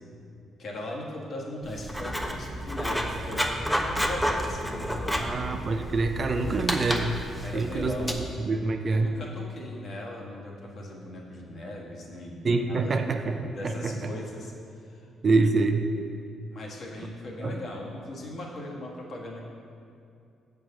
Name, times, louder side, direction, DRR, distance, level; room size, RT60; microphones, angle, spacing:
voice 1, 0.6-3.6 3.9-5.4 7.4-8.2 8.9-13.0 13.5-15.1 16.5-19.4, left 1 dB, 55° left, -2 dB, 1.5 m, -39 dB
Writing, 1.6-8.1, equal, 5° left, 0.7 m, -30 dB
voice 2, 5.2-7.2 7.5-8.1 8.4-9.1 12.4-14.0 15.2-15.8 17.4-17.6, right 3 dB, 40° right, 6 dB, 0.6 m, -26 dB
7.1 x 4.7 x 6.5 m, 2.5 s
cardioid pair, 90°, 0 cm